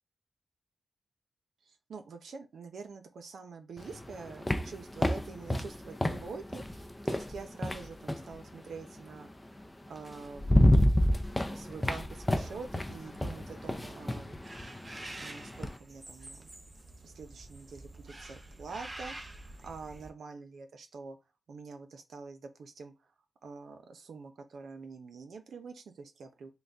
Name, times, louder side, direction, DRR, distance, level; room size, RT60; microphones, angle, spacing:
voice 1, 1.9-9.3 9.6-10.6 11.4-14.7 15.2-16.5 17.0-21.2 21.5-22.9 23.4-26.5, right 4 dB, 85° right, 0.6 m, -46 dB
sound 1, 3.8-8.3 9.6-9.7 10.1-15.8, left 1 dB, 15° left, 0.5 m, -29 dB
sound 2, 14.4-20.1, right 2 dB, 30° right, 0.7 m, -47 dB
3.9 x 2.3 x 3.4 m
wide cardioid pair, 90°, 0 cm